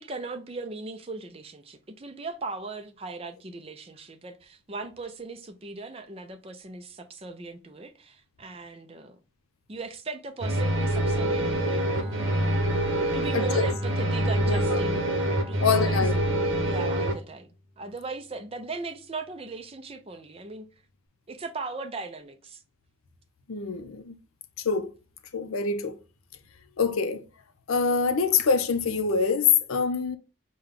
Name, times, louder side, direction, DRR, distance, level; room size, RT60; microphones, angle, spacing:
voice 1, 0.0-9.2 9.7-12.3 13.1-20.7 21.3-22.6, right 3 dB, 30° right, 0.5 m, -38 dB
sound 1, 10.4-17.1, right 1 dB, 65° right, 0.9 m, -25 dB
Bowed string instrument, 11.3-17.3, equal, 10° left, 1.0 m, -36 dB
voice 2, 13.3-13.7 14.5-14.8 15.6-16.1 23.5-24.2 24.6-24.9 25.3-26.0 26.8-27.2 27.7-30.2, left 5 dB, 85° left, 0.6 m, -25 dB
5.2 x 2.2 x 3.6 m
head